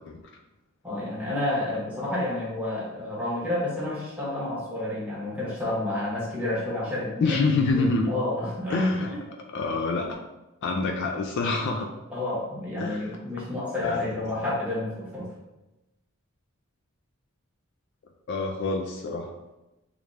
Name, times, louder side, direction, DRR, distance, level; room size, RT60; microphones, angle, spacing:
voice 1, 0.8-7.4 8.1-9.2 12.1-15.3, left 1 dB, 5° right, -8 dB, 1.1 m, -30 dB
voice 2, 7.2-8.1 8.7-10.2 10.6-11.9 12.8-13.1 13.8-14.2 18.3-19.3, left 3 dB, 55° left, 3 dB, 0.3 m, -27 dB
3.2 x 2.5 x 3.2 m, 0.98 s
head